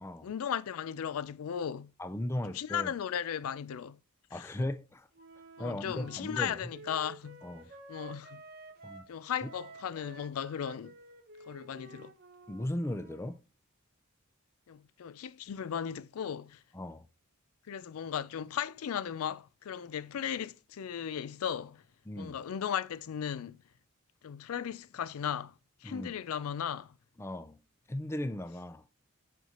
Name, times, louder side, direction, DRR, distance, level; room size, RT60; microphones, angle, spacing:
voice 1, 0.2-1.9 2.5-4.0 4.3-4.6 5.6-7.4 7.9-8.4 9.1-10.9 11.4-12.1 14.7-16.6 17.7-21.8 22.2-23.6 24.2-25.5 25.8-26.9, left 8 dB, 75° left, 0.4 m, -36 dB
voice 2, 2.0-2.9 4.3-5.1 5.6-6.5 7.4-7.7 8.8-9.0 12.5-13.4 16.7-17.0 22.1-22.4 25.8-26.1 27.2-27.6 27.9-28.9, left 1 dB, 10° left, 0.4 m, -37 dB
Wind instrument woodwind instrument, 5.1-9.1 9.4-13.3, right 2 dB, 45° right, 1.1 m, -51 dB
8.1 x 4.5 x 2.9 m
head